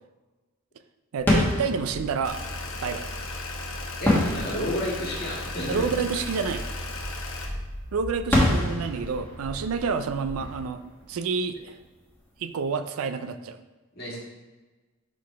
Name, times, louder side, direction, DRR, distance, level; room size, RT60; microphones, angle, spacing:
voice 1, 1.1-2.4 2.8-3.1 5.7-6.6 7.9-10.8 11.1-11.8 12.4-13.6, right 5 dB, 80° right, 10 dB, 0.4 m, -29 dB
sound 1, 1.2-11.8, left 1 dB, 10° left, 1.3 m, -29 dB
sound 2, 2.2-7.5, left 2 dB, 70° left, 1.0 m, -35 dB
voice 2, 4.0-5.9 13.9-14.2, left 1 dB, 45° left, -4 dB, 2.0 m, -31 dB
4.7 x 4.1 x 5.6 m, 1.2 s
head